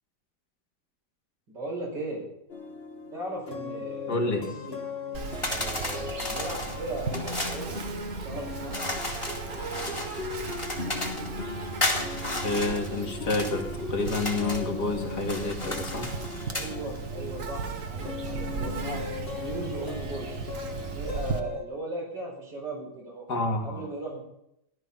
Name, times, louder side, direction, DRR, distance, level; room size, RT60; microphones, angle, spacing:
voice 1, 1.5-2.3 3.1-4.8 5.5-7.8 8.2-8.9 16.5-19.0 19.3-20.4 20.9-23.2 23.6-24.2, right 1 dB, 80° right, -1 dB, 6.4 m, -37 dB
sound 1, 2.5-21.6, left 4 dB, 35° left, 2.0 m, -38 dB
voice 2, 4.1-4.4 12.4-16.1 23.3-23.9, left 3 dB, 70° left, 2 dB, 2.9 m, -29 dB
Insect, 5.1-21.4, right 5 dB, 50° right, 1.7 m, -37 dB
sound 2, 5.4-7.6 8.7-11.3 11.8-13.5 14.0-14.7 15.2-16.7, left 1 dB, 15° left, 2.4 m, -33 dB
15.0 x 13.0 x 5.7 m, 0.80 s
omnidirectional pair, 1.9 m